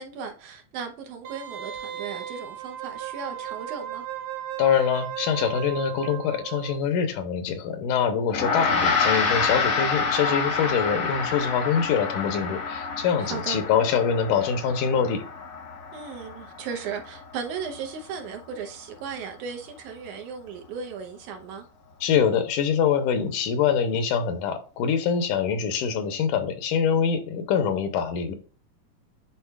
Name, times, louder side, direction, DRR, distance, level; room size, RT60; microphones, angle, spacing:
voice 1, 0.0-4.0 13.2-13.6 15.9-21.7, right 6 dB, 75° right, 2.2 m, -36 dB
Wind instrument woodwind instrument, 1.2-6.8 7.1-7.2, right 11 dB, 90° right, 2.7 m, -36 dB
voice 2, 4.6-15.2 22.0-28.3, left 7 dB, 80° left, 2.4 m, -24 dB
Gong, 8.3-17.9, left 4 dB, 50° left, 1.0 m, -28 dB
10.0 x 4.2 x 2.4 m
omnidirectional pair, 3.7 m